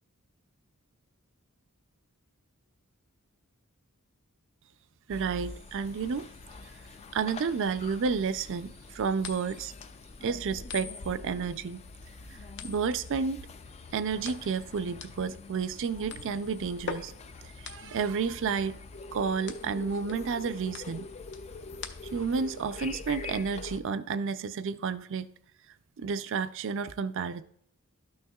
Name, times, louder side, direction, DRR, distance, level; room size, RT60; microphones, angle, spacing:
sound 1, 5.1-23.8, left 3 dB, 30° left, 0.3 m, -45 dB
voice 1, 5.1-6.3 7.1-9.7 10.2-11.8 12.3-12.4 12.6-13.5 13.9-17.1 17.4-18.8 19.1-21.1 22.1-25.3 26.0-27.4, right 5 dB, 60° right, 0.4 m, -31 dB
sound 2, 9.2-22.4, left 5 dB, 55° left, 0.7 m, -44 dB
12.5 x 6.4 x 2.3 m
head